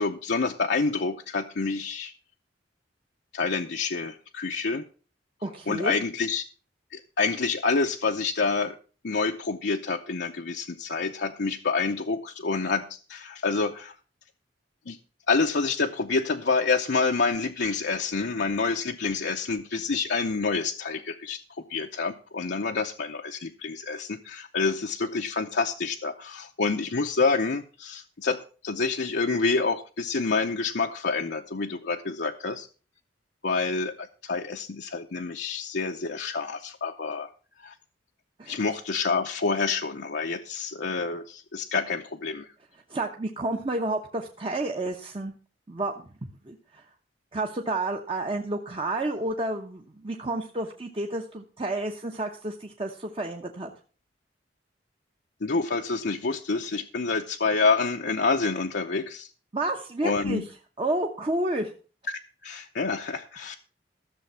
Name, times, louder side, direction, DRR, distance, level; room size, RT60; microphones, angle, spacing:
voice 1, 0.0-2.1 3.3-4.8 5.7-6.4 6.9-8.8 9.0-13.9 14.9-15.0 15.3-21.4 21.7-32.7 33.4-37.3 37.6-37.7 38.5-42.5 55.4-59.3 60.0-60.4 62.1-63.6, left 4 dB, 65° left, 2 dB, 0.7 m, -28 dB
voice 2, 5.4-5.9 38.4-38.6 42.9-45.3 45.7-45.9 46.5-46.8 47.3-53.7 59.5-60.4 60.8-61.7, right 2 dB, 30° right, 2 dB, 1.0 m, -30 dB
14.0 x 6.9 x 5.6 m, 0.38 s
head